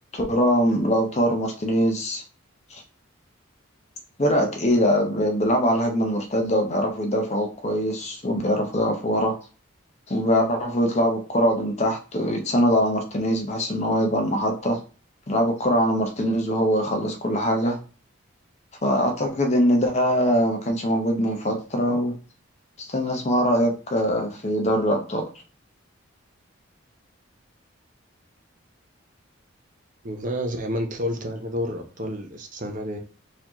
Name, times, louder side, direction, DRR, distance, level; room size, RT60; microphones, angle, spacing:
voice 1, 0.1-2.2 2.7-2.8 4.2-9.3 10.1-14.8 15.3-17.8 18.8-22.2 22.8-25.2, equal, 30° left, 2 dB, 0.7 m, -22 dB
voice 2, 30.0-33.0, equal, 40° right, 4 dB, 0.6 m, -29 dB
4.1 x 2.8 x 3.0 m, 0.35 s
head